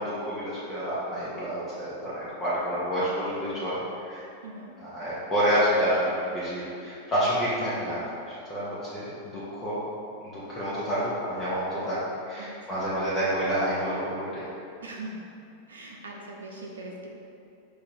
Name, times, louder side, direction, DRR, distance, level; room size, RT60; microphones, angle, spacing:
voice 1, 0.0-3.8 4.0-4.3 4.8-8.0 8.3-9.8 10.3-12.0 12.3-14.4, equal, 20° left, -10 dB, 1.0 m, -28 dB
voice 2, 4.4-4.8 12.4-12.8 14.8-15.2 15.7-17.1, right 2 dB, 70° right, -1 dB, 0.6 m, -41 dB
4.8 x 2.6 x 4.2 m, 2.6 s
figure-of-eight pair, 90°, 0 cm